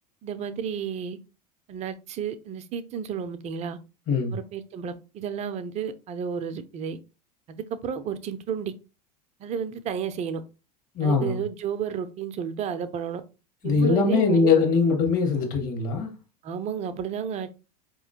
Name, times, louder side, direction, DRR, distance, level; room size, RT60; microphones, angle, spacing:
voice 1, 0.2-1.2 1.7-3.8 4.3-7.0 7.5-8.7 9.4-10.4 11.0-13.2 13.6-14.5 16.4-17.5, right 7 dB, 35° right, 0.5 m, -32 dB
voice 2, 10.9-11.4 13.6-16.1, left 5 dB, 40° left, 1.5 m, -22 dB
4.7 x 3.0 x 2.8 m
figure-of-eight pair, 80°, 21 cm